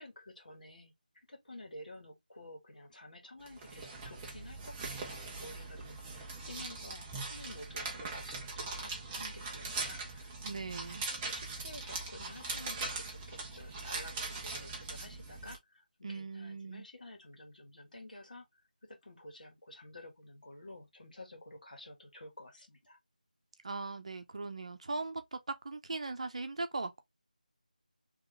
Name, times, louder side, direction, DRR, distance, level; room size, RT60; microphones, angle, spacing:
voice 1, 0.0-10.8 11.2-23.0, left 1 dB, 70° left, 1.8 m, -51 dB
sound 1, 3.5-15.6, right 3 dB, 10° right, 0.4 m, -41 dB
voice 2, 10.4-11.0 16.0-16.9 23.6-27.0, right 3 dB, 45° right, 0.7 m, -39 dB
3.8 x 3.0 x 3.2 m
figure-of-eight pair, 170°, 5 cm